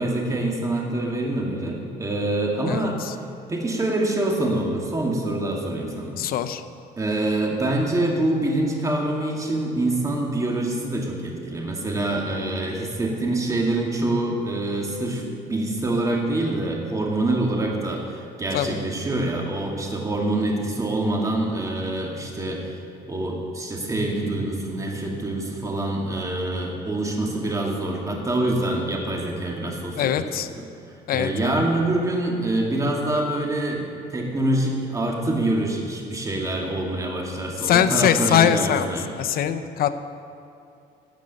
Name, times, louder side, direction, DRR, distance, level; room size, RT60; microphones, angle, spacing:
voice 1, 0.0-3.0 3.5-6.2 7.0-22.8 23.1-30.2 31.1-39.1, right 1 dB, 20° right, -1 dB, 2.1 m, -25 dB
voice 2, 2.7-3.1 6.2-6.6 18.5-18.8 30.0-30.5 31.1-31.6 37.6-38.9 39.2-39.9, left 9 dB, 60° left, 11 dB, 0.7 m, -22 dB
12.5 x 5.3 x 8.8 m, 2.6 s
cardioid pair, 110°, 17 cm